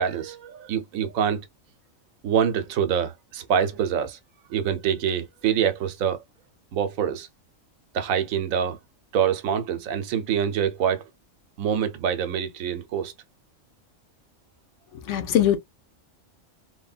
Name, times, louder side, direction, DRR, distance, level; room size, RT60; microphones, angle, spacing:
voice 1, 0.0-1.5 2.2-4.2 4.5-6.2 6.7-7.3 7.9-8.8 9.1-11.0 11.6-13.1, right 8 dB, 90° right, 1.1 m, -25 dB
voice 2, 14.9-15.6, left 10 dB, 70° left, 0.8 m, -22 dB
3.2 x 2.2 x 2.4 m
omnidirectional pair, 1.4 m